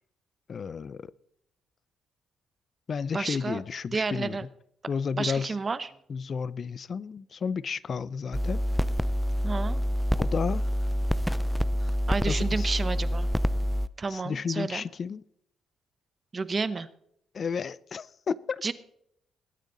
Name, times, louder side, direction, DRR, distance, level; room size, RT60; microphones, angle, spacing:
voice 1, 0.5-1.1 2.9-4.4 4.9-5.6 6.1-8.6 10.2-10.6 11.8-11.9 12.3-12.7 14.1-15.2 17.3-18.6, left 6 dB, 45° left, 0.5 m, -32 dB
voice 2, 3.1-3.6 3.9-4.5 5.1-5.9 9.4-9.8 12.1-13.3 14.0-14.8 16.3-16.9 18.6-18.7, right 4 dB, 30° right, 0.9 m, -30 dB
sound 1, 8.3-13.9, equal, ahead, 0.6 m, -27 dB
20.0 x 9.2 x 4.0 m
cardioid pair, 90°, 0 cm